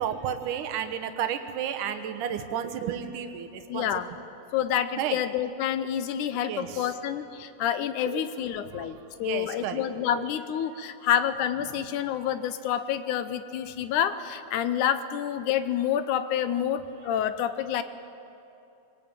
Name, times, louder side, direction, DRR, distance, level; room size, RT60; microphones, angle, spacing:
voice 1, 0.0-3.9 5.0-5.2 6.5-6.9 8.1-8.2 8.7-8.9 9.2-9.8 10.1-10.2 12.2-12.3, right 9 dB, 70° right, 7 dB, 2.6 m, -32 dB
voice 2, 3.7-4.1 4.5-17.8, left 10 dB, 75° left, 11 dB, 2.0 m, -28 dB
23.0 x 18.5 x 9.0 m, 2.8 s
omnidirectional pair, 4.0 m